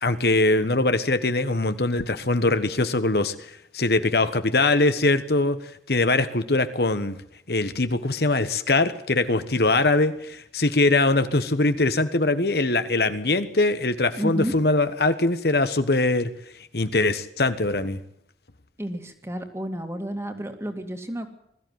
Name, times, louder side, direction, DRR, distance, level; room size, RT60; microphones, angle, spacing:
voice 1, 0.0-5.6 5.9-7.2 7.5-16.3 16.7-18.0, left 2 dB, 65° left, 11 dB, 1.3 m, -22 dB
voice 2, 14.2-14.5 18.8-21.3, right 1 dB, 15° right, 6 dB, 2.3 m, -31 dB
21.5 x 14.5 x 9.4 m, 0.73 s
head